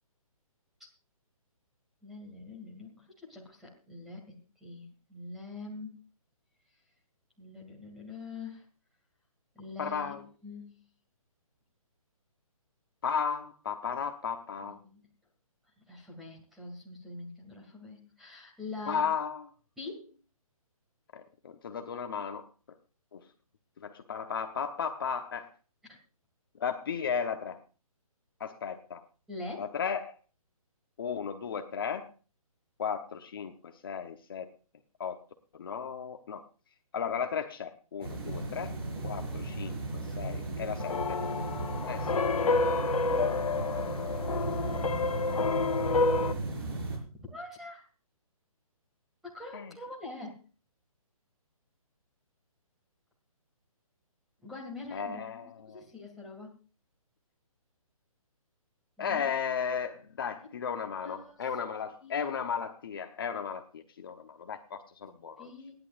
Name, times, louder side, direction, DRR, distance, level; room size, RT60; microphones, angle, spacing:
voice 1, 2.0-5.9 7.4-8.6 9.5-10.8 14.6-15.0 15.9-19.0 19.8-20.1 25.8-26.0 29.3-29.7 38.4-38.6 47.2-47.9 49.2-50.4 54.4-56.5 59.0-59.3 61.0-61.3 62.0-62.4 65.4-65.7, left 3 dB, ahead, -1 dB, 2.2 m, -44 dB
voice 2, 9.8-10.2 13.0-14.8 18.9-19.4 21.1-22.5 23.1-23.3 23.8-25.5 26.6-27.6 28.4-29.0 29.6-30.2 31.0-32.1 32.8-34.5 35.0-35.2 35.5-36.4 36.9-38.7 39.0-41.2 41.8-42.2 49.5-49.7 54.9-55.8 59.0-65.5, left 7 dB, 40° left, 6 dB, 1.0 m, -35 dB
sound 1, 38.0-47.0, right 2 dB, 40° right, 5.4 m, -35 dB
sound 2, 40.8-46.3, left 4 dB, 75° left, 1.1 m, -29 dB
29.0 x 11.0 x 2.5 m, 0.36 s
hypercardioid pair, 175°, 19 cm